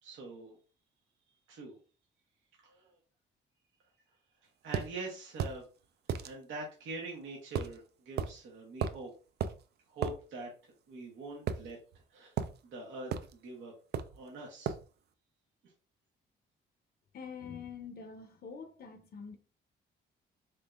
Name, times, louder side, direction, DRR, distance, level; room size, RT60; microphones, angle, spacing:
voice 1, 0.0-0.5 1.5-1.8 2.6-3.0 4.6-5.6 6.1-9.1 9.9-10.5 10.9-11.8 12.1-13.7 14.1-14.7, right 2 dB, 80° right, 1.1 m, -44 dB
sound 1, 4.7-4.9 5.4-5.6 6.1-6.3 7.6-7.8 8.2-8.3 8.8-9.0 9.4-9.6 10.0-10.2 11.5-12.0 12.4-12.6 13.1-13.3 13.9-14.2 14.7-14.9, right 7 dB, 55° right, 0.4 m, -34 dB
voice 2, 17.1-19.4, left 6 dB, 50° left, 0.6 m, -45 dB
3.6 x 3.3 x 2.4 m
cardioid pair, 90°, 20 cm